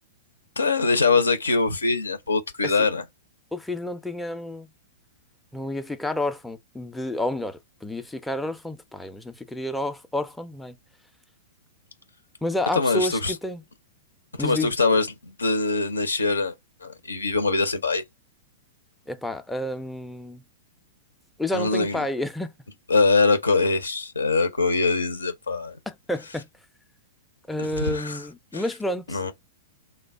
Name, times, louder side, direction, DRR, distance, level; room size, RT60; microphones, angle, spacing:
voice 1, 0.6-3.0 12.8-13.3 14.4-16.5 16.8-18.0 21.5-22.0 22.9-25.8 27.6-28.2 28.5-28.6 29.1-29.3, left 3 dB, 75° left, 0.5 m, -23 dB
voice 2, 3.5-4.7 5.5-10.8 12.4-13.6 14.4-14.7 19.1-20.4 21.4-22.5 25.9-26.5 27.5-29.2, left 1 dB, 5° left, 0.4 m, -30 dB
3.2 x 2.2 x 3.5 m
figure-of-eight pair, 105°, 0 cm